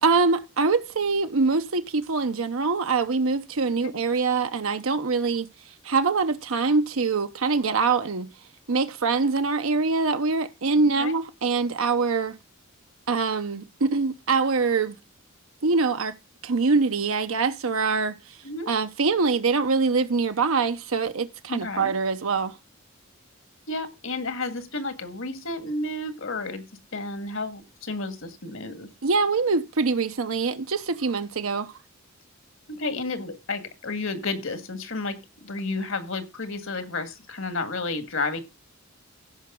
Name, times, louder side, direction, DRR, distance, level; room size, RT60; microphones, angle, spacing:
voice 1, 0.0-5.5 5.8-8.3 8.7-12.4 13.1-15.0 15.6-16.1 16.4-18.4 18.7-22.6 29.0-31.7, right 4 dB, 75° right, 0.8 m, -24 dB
voice 2, 21.5-21.9 23.7-26.6 26.9-28.9 32.7-38.4, left 3 dB, 65° left, 1.8 m, -31 dB
16.0 x 5.8 x 3.7 m
head